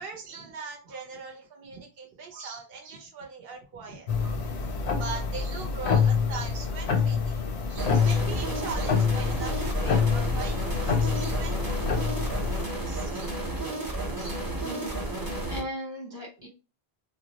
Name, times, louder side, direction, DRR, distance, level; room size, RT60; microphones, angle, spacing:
voice 1, 0.0-13.6 14.1-14.4 15.4-15.5, right 5 dB, 65° right, 1 dB, 0.9 m, -41 dB
sound 1, 4.1-12.6, left 5 dB, 85° left, 0.9 m, -26 dB
sound 2, 7.8-15.6, right 2 dB, 25° right, 0.6 m, -32 dB
voice 2, 14.6-16.5, equal, 30° left, -3 dB, 0.5 m, -38 dB
2.3 x 2.0 x 2.8 m, 0.31 s
omnidirectional pair, 1.1 m